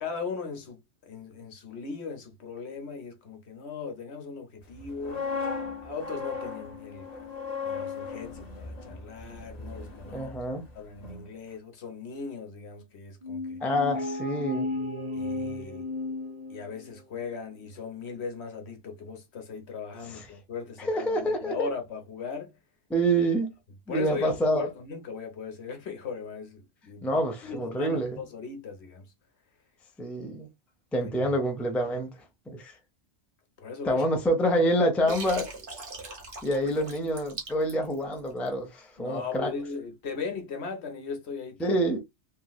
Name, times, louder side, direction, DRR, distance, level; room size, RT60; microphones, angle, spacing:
voice 1, 0.0-5.3 5.8-7.3 7.6-10.3 10.7-13.6 15.1-15.9 16.5-22.5 23.9-29.1 31.0-31.3 33.6-34.1 35.1-35.2 39.0-41.8, left 5 dB, 70° left, 1.1 m, -38 dB
sound 1, 4.8-10.7 11.0-11.3, left 5 dB, 40° left, 0.9 m, -37 dB
voice 2, 10.1-10.6 13.6-14.7 20.0-20.3 20.8-21.7 22.9-23.5 23.9-24.7 27.0-28.2 30.0-30.5 30.9-32.1 32.5-32.8 33.8-35.4 36.4-39.5 41.6-42.0, right 1 dB, ahead, 0.5 m, -27 dB
sound 2, 13.2-17.0, left 2 dB, 30° right, 0.8 m, -34 dB
Water, 35.1-38.5, right 3 dB, 50° right, 1.2 m, -41 dB
3.2 x 2.9 x 2.2 m
omnidirectional pair, 1.2 m